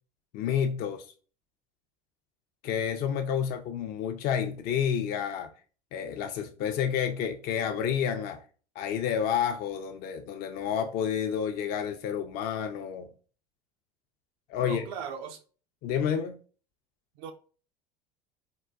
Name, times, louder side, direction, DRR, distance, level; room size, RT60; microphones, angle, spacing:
voice 1, 0.3-1.1 2.6-5.5 5.9-8.4 8.8-13.1 14.5-14.9 15.8-16.4, left 8 dB, 50° left, 0.4 m, -30 dB
voice 2, 14.6-15.4 17.2-17.3, right 7 dB, 65° right, 0.4 m, -38 dB
3.7 x 2.2 x 2.3 m
hypercardioid pair, 85°, 20 cm